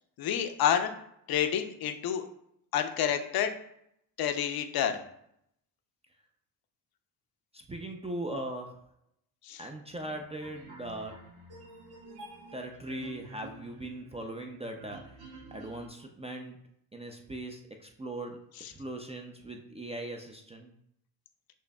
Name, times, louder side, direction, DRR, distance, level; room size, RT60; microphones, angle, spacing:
voice 1, 0.2-0.9 1.3-2.2 2.7-3.6 4.2-5.0 9.4-9.6, left 9 dB, 50° left, 8 dB, 0.6 m, -28 dB
voice 2, 7.5-8.8 9.6-11.3 12.5-16.6 16.9-18.4 18.7-20.7, right 1 dB, 15° right, 2 dB, 0.4 m, -40 dB
sound 1, 9.9-15.9, right 3 dB, 55° right, 1.4 m, -50 dB
6.3 x 2.6 x 2.2 m, 0.74 s
supercardioid pair, 65°, 47 cm